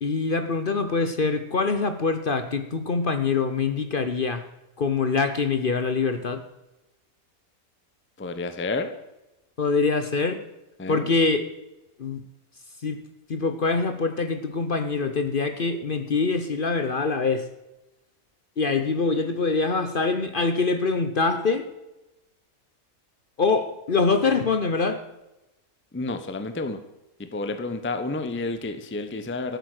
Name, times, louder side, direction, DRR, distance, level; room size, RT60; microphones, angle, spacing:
voice 1, 0.0-4.4 4.8-6.4 9.6-10.4 10.9-11.5 12.0-12.2 12.8-13.0 13.3-17.4 18.6-21.7 23.4-25.0, left 4 dB, 45° left, 9 dB, 0.8 m, -24 dB
voice 2, 8.2-8.9 10.8-11.1 25.9-26.8 27.2-29.6, left 3 dB, 10° left, 8 dB, 0.6 m, -30 dB
13.0 x 8.0 x 6.5 m, 0.96 s
omnidirectional pair, 1.5 m